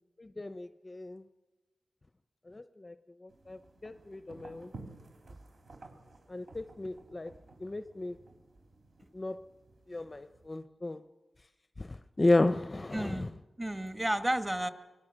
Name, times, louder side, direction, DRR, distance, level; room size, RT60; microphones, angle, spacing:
voice 1, 0.2-1.2 2.5-2.9 3.2-4.7 6.3-7.3 7.6-8.2 9.1-9.4 9.9-11.0 11.8-13.3, left 2 dB, 25° left, 0.6 m, -33 dB
sound 1, 3.3-10.5, right 2 dB, 60° right, 3.6 m, -54 dB
voice 2, 12.9-14.7, right 1 dB, 15° right, 1.4 m, -32 dB
26.0 x 20.0 x 6.4 m
wide cardioid pair, 95°, 0 cm